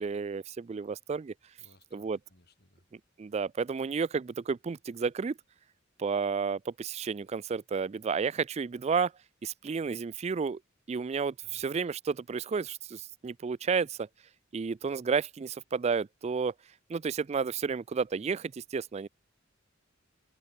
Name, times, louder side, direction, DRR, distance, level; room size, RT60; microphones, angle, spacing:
voice 1, 0.0-1.3 1.9-2.2 3.2-5.3 6.0-9.1 9.4-10.6 10.9-14.1 14.5-16.5 16.9-19.1, right 5 dB, 35° right, 0.3 m, -31 dB
voice 2, 1.6-2.8 11.4-11.6, left 1 dB, 55° left, 5.9 m, -63 dB
head